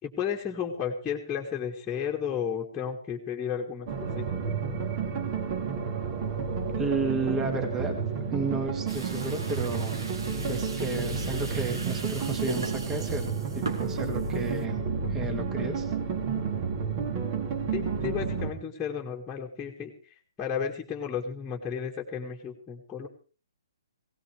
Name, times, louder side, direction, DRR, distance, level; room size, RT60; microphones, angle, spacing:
voice 1, 0.0-3.9 4.2-4.4 17.7-19.9 20.4-23.1, left 7 dB, 15° left, -2 dB, 2.0 m, -33 dB
sound 1, 3.9-18.5, right 5 dB, 40° right, 2.9 m, -31 dB
voice 2, 6.8-7.9 8.3-10.0 10.5-14.8 15.1-15.9, right 3 dB, 15° right, 5 dB, 2.1 m, -32 dB
sound 2, 8.9-14.6, right 2 dB, 75° right, 2.9 m, -40 dB
18.0 x 17.5 x 3.4 m, 0.37 s
hypercardioid pair, 135°, 2 cm